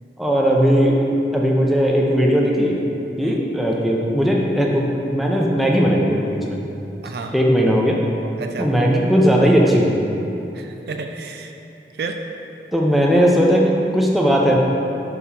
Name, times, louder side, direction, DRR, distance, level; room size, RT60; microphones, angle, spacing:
voice 1, 0.2-1.0 1.3-2.8 3.2-6.6 7.3-8.0 8.6-10.1 12.7-14.6, equal, ahead, -2 dB, 0.5 m, -17 dB
voice 2, 7.0-7.4 8.4-8.7 10.5-11.6 11.9-12.2, right 4 dB, 60° right, 5 dB, 0.4 m, -31 dB
5.7 x 4.2 x 4.7 m, 2.9 s
head